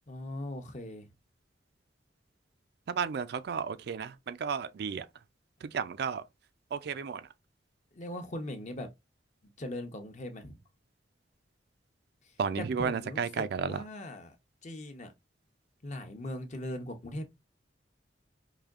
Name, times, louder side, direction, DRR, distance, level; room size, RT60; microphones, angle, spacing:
voice 1, 0.1-1.1 7.9-8.9 9.6-10.6 12.6-14.3 14.6-15.1 15.8-17.3, left 1 dB, 40° left, 0.7 m, -40 dB
voice 2, 2.9-5.1 5.6-6.2 6.7-7.2 12.4-13.8, right 6 dB, 60° right, 0.4 m, -33 dB
4.9 x 2.6 x 2.4 m
head